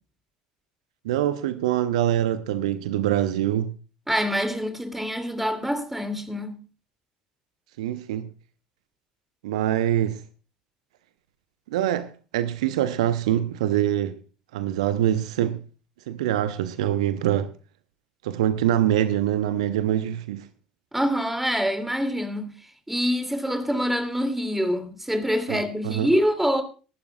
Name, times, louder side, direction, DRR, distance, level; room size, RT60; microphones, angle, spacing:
voice 1, 1.0-3.7 7.8-8.3 9.4-10.2 11.7-14.2 14.5-15.6 16.1-17.5 18.2-20.4 25.5-26.1, right 11 dB, 70° right, 0.7 m, -24 dB
voice 2, 4.1-6.6 20.9-22.5 22.9-26.6, equal, 5° right, 2.6 m, -25 dB
23.0 x 12.0 x 2.3 m
figure-of-eight pair, 60°, 4 cm